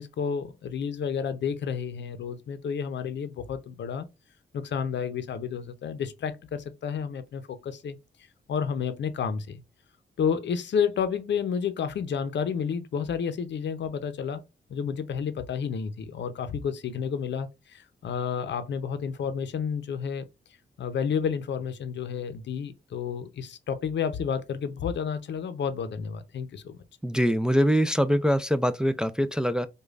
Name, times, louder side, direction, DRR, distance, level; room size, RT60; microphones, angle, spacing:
voice 1, 0.0-4.1 4.5-8.0 8.5-9.6 10.2-14.4 14.7-20.3 20.8-26.8, left 7 dB, 75° left, 0.6 m, -30 dB
voice 2, 27.0-29.7, equal, 5° right, 0.3 m, -23 dB
4.9 x 2.2 x 2.4 m
cardioid pair, 65°, 19 cm